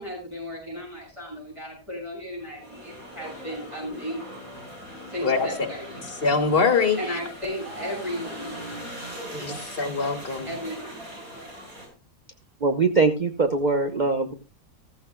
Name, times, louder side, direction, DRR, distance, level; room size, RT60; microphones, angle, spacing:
voice 1, 0.0-4.4 5.1-6.0 7.0-8.6 10.5-11.0, equal, 20° right, -2 dB, 7.1 m, -35 dB
sound 1, 2.3-11.9, equal, 70° right, 5.1 m, -40 dB
voice 2, 6.2-7.0 9.4-10.5, left 4 dB, 40° left, 6 dB, 2.0 m, -23 dB
voice 3, 12.6-14.3, right 3 dB, 40° right, 5 dB, 0.8 m, -22 dB
15.0 x 14.5 x 2.2 m, 0.32 s
omnidirectional pair, 1.6 m